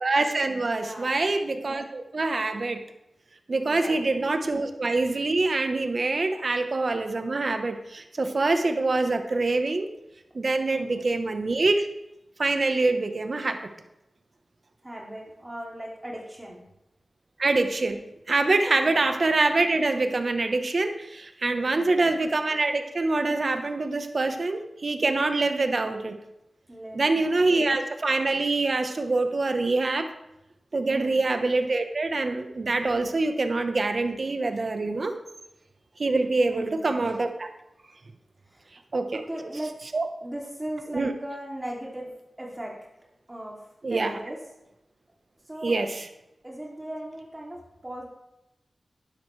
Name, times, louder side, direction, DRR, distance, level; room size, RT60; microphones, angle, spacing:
voice 1, 0.0-2.8 3.5-9.9 10.3-11.9 12.4-13.6 17.4-18.0 18.3-26.2 26.9-30.1 30.7-35.1 36.0-37.5 38.9-39.2 39.9-40.1 40.9-41.1 43.8-44.2 45.6-46.0, right 3 dB, 55° right, 7 dB, 1.1 m, -25 dB
voice 2, 0.7-1.3 3.7-4.1 10.7-11.2 14.8-16.6 18.7-19.1 21.4-22.1 26.7-27.7 30.9-31.3 36.5-37.1 38.5-38.7 39.1-39.7 40.2-42.8 43.3-43.6 43.9-44.4 45.4-45.8 46.4-48.1, right 1 dB, 20° right, -3 dB, 2.7 m, -38 dB
12.0 x 10.5 x 3.3 m, 0.88 s
wide cardioid pair, 65°, 0 cm